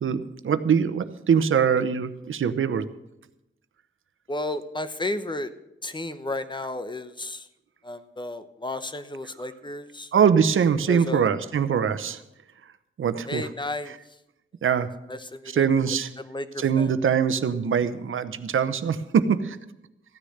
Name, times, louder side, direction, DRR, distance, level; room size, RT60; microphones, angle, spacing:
voice 1, 0.0-2.9 10.1-12.2 13.0-13.4 14.6-14.9 15.5-16.1 16.6-19.6, right 7 dB, 75° right, 12 dB, 0.9 m, -23 dB
voice 2, 4.3-5.5 5.8-7.5 7.8-10.1 10.9-11.3 13.2-14.0 15.1-15.7 16.2-16.9, left 2 dB, 20° left, 11 dB, 1.0 m, -33 dB
14.5 x 9.9 x 6.6 m, 0.90 s
wide cardioid pair, 95°, 21 cm